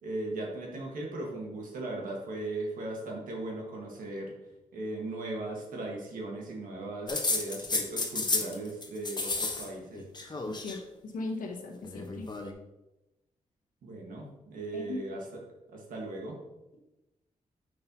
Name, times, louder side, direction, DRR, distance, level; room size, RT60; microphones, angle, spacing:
voice 1, 0.0-4.3 4.7-10.0 13.8-15.3 15.7-16.4, right 2 dB, 85° right, -1 dB, 1.5 m, -38 dB
sound 1, 7.1-8.6 8.8-9.7 9.9-10.8 11.8-12.5, left 3 dB, 30° left, 1.0 m, -32 dB
voice 2, 10.4-12.3 14.7-15.0, left 2 dB, 80° left, 2 dB, 1.2 m, -38 dB
6.6 x 5.5 x 2.8 m, 0.96 s
cardioid pair, 60°, 14 cm